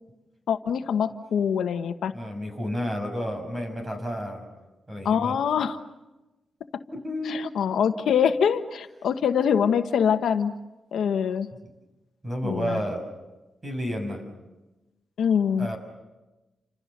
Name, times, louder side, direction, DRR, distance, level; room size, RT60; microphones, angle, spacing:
voice 1, 0.5-2.1 5.0-5.8 7.2-10.5 10.9-11.5 12.4-12.8 15.2-15.7, left 7 dB, 80° left, 8 dB, 1.2 m, -24 dB
voice 2, 2.1-4.4 4.9-5.3 6.9-7.4 12.2-13.1 13.6-14.2 15.6-15.8, equal, 20° right, 6 dB, 6.5 m, -31 dB
30.0 x 27.0 x 6.7 m, 1.1 s
wide cardioid pair, 125°, 0 cm